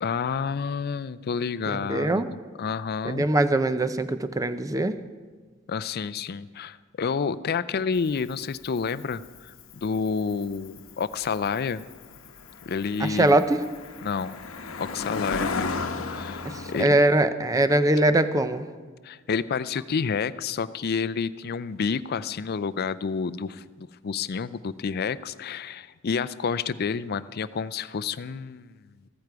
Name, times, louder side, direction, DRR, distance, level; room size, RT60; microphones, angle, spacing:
voice 1, 0.0-2.2 2.6-3.3 5.7-11.8 12.7-13.3 14.0-14.4 14.8-15.8 16.1-17.0 19.0-28.7, left 5 dB, 50° left, 16 dB, 0.4 m, -29 dB
voice 2, 1.7-2.3 3.0-4.9 13.0-13.6 16.4-16.5 16.8-18.6, right 1 dB, 15° right, 11 dB, 0.6 m, -22 dB
Cricket, 7.9-16.8, left 4 dB, 90° left, 1.0 m, -35 dB
15.0 x 14.0 x 4.7 m, 1.5 s
head